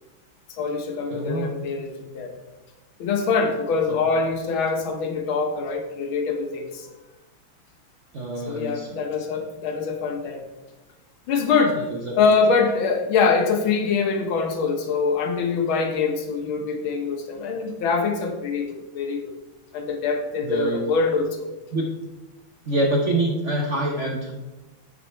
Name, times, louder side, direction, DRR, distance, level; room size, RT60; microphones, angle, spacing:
voice 1, 0.5-2.3 3.0-6.9 8.5-10.4 11.3-11.8 12.2-19.3 19.7-21.5, left 5 dB, 75° left, 5 dB, 1.8 m, -24 dB
voice 2, 1.1-1.5 3.9-4.0 8.1-8.9 11.7-12.1 20.4-20.8 21.7-21.9 22.7-24.3, right 1 dB, 60° right, 0 dB, 0.8 m, -25 dB
9.7 x 5.5 x 4.4 m, 1.1 s
omnidirectional pair, 2.3 m